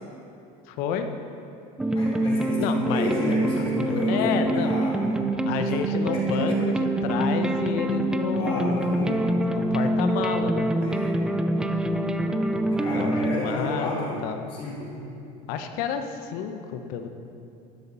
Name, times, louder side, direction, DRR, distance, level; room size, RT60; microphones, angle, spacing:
voice 1, 0.7-1.1 2.6-3.1 3.8-4.7 5.5-9.2 9.5-10.7 12.9-14.4 15.5-17.1, left 7 dB, 65° left, 7 dB, 0.9 m, -30 dB
sound 1, 1.8-13.4, right 1 dB, 5° right, 0.4 m, -25 dB
voice 2, 1.9-5.2 5.6-5.8 6.1-6.6 8.3-9.4 10.8-11.2 12.7-14.2 14.5-14.9, left 2 dB, 35° left, -5 dB, 2.7 m, -32 dB
12.5 x 6.9 x 5.5 m, 2.7 s
cardioid pair, 140°, 16 cm